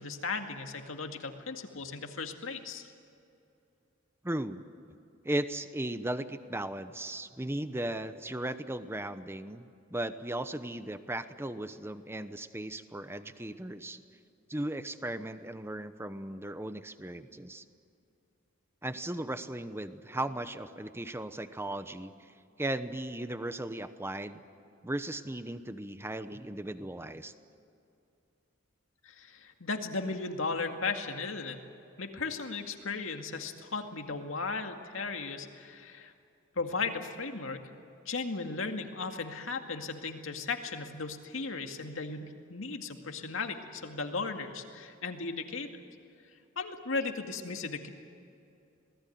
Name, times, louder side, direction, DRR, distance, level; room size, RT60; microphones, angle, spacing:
voice 1, 0.0-2.9 29.0-31.6 32.0-36.1 36.6-37.6 38.1-45.8 46.6-47.9, left 4 dB, 75° left, 5 dB, 2.2 m, -36 dB
voice 2, 4.2-4.6 5.2-14.0 14.5-17.6 18.8-22.3 22.6-24.4 24.8-27.3, right 1 dB, 10° right, 11 dB, 1.0 m, -37 dB
27.0 x 19.5 x 9.4 m, 2.7 s
head